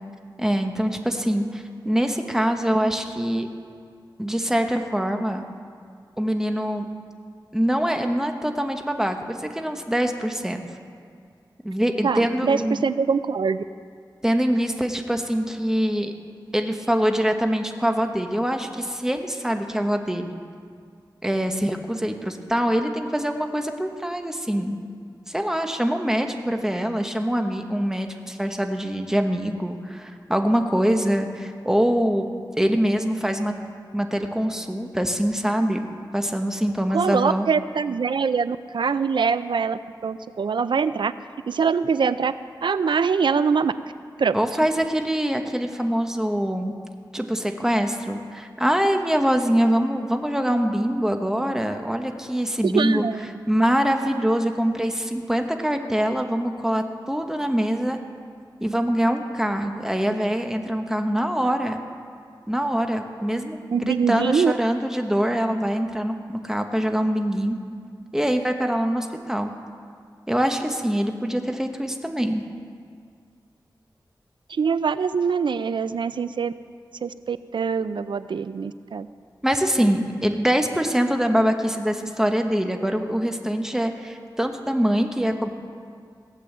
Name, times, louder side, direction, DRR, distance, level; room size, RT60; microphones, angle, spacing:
voice 1, 0.4-3.5 4.2-5.5 6.2-6.9 7.5-10.6 11.6-12.8 14.2-16.1 16.5-20.4 21.2-24.8 25.3-32.3 32.6-33.5 33.9-35.8 36.1-37.5 44.3-46.7 47.1-53.0 53.5-58.0 58.6-61.8 62.5-67.6 68.1-69.5 70.3-72.4 79.4-85.5, equal, 5° right, 5 dB, 1.2 m, -24 dB
voice 2, 12.0-13.6 36.9-41.1 41.5-42.3 42.6-43.7 44.2-44.4 52.6-53.2 63.7-64.5 74.5-76.5 77.0-79.1, right 5 dB, 85° right, 13 dB, 0.5 m, -23 dB
16.5 x 8.6 x 7.3 m, 2.1 s
wide cardioid pair, 85°, 8 cm